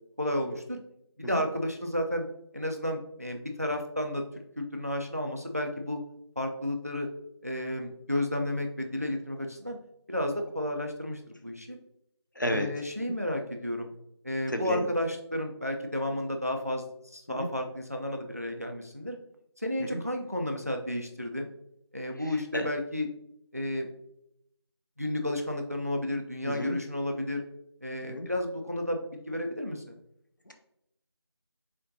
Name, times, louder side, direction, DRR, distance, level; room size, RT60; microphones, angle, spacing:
voice 1, 0.2-0.8 1.2-2.3 2.5-4.2 4.6-6.0 6.4-7.1 7.4-9.8 10.1-11.8 12.5-13.9 14.2-19.2 19.6-21.5 21.9-23.1 23.5-23.9 25.0-27.4 27.8-30.0, left 1 dB, 35° right, 4 dB, 0.3 m, -32 dB
voice 2, 12.4-12.7 14.5-14.8 17.4-17.5 19.8-20.0 22.5-22.7 26.4-26.8 28.0-28.3 30.5-30.6, equal, 45° left, 5 dB, 0.5 m, -31 dB
4.2 x 3.9 x 2.6 m, 0.78 s
figure-of-eight pair, 175°, 14 cm